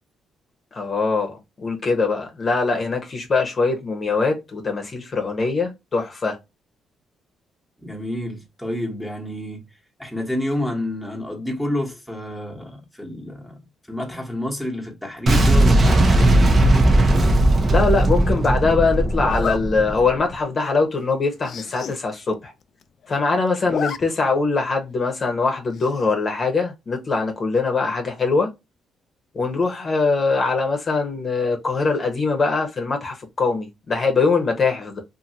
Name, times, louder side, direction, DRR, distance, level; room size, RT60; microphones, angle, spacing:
voice 1, 0.7-6.4 17.7-22.5 23.1-28.5 29.3-35.0, left 4 dB, 40° left, 0.9 m, -22 dB
voice 2, 7.8-9.6 10.0-13.6 13.9-16.6, left 1 dB, ahead, 1.2 m, -29 dB
Boom, 15.3-20.2, right 1 dB, 40° right, 0.8 m, -17 dB
Zipper (clothing), 17.3-17.7 19.2-19.6 20.2-20.3 20.7-20.8 21.0-21.1 21.4-22.0 22.3-22.4 22.6-23.2 23.5-24.0 24.3-24.4 25.7-26.1, left 7 dB, 60° left, 0.4 m, -31 dB
2.7 x 2.6 x 2.7 m
cardioid pair, 90°, 0 cm